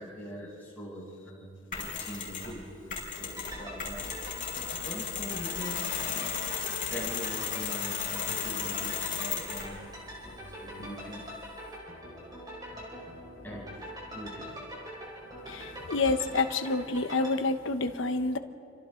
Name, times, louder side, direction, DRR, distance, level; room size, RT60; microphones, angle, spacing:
voice 1, 0.0-6.3 6.6-9.8 10.2-11.2 12.7-12.9 13.4-14.5, equal, 10° left, -7 dB, 7.3 m, -43 dB
Mechanisms, 1.7-2.5 2.9-9.8, left 7 dB, 40° left, 6.2 m, -35 dB
sound 1, 3.2-17.4, equal, 20° right, 4.6 m, -43 dB
voice 2, 15.5-18.4, left 3 dB, 75° left, 8 dB, 1.1 m, -28 dB
29.5 x 25.0 x 3.9 m, 2.5 s
head